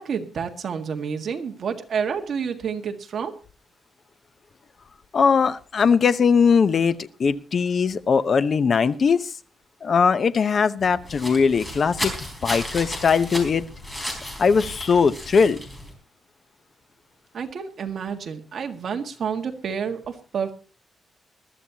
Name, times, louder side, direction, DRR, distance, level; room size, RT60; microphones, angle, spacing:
voice 1, 0.0-3.3 17.3-20.5, right 6 dB, 50° right, 5 dB, 1.7 m, -29 dB
voice 2, 5.1-9.3 9.8-12.1 12.4-13.6 14.4-15.6, left 5 dB, 40° left, 13 dB, 0.8 m, -20 dB
sound 1, 10.8-15.9, left 1 dB, 10° left, 4.0 m, -34 dB
21.0 x 13.0 x 2.9 m, 0.35 s
wide cardioid pair, 160°, 0 cm